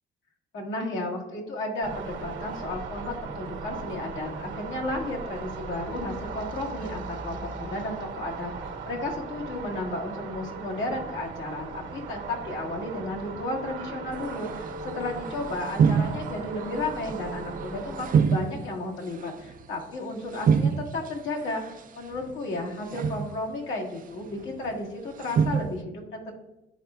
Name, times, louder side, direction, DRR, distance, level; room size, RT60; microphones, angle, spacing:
voice 1, 0.5-21.6 21.9-26.4, left 2 dB, 75° left, -1 dB, 1.7 m, -33 dB
sound 1, 1.8-18.2, right 4 dB, 70° right, 1.2 m, -38 dB
sound 2, 14.4-14.6 14.9-15.2 15.6-16.6 17.0-17.6 18.0-19.9 20.3-21.8 22.1-22.5 22.9-23.5 24.2-24.8 25.2-25.8, right 6 dB, 45° right, 0.4 m, -26 dB
10.0 x 4.4 x 2.4 m, 0.93 s
cardioid pair, 90°, 20 cm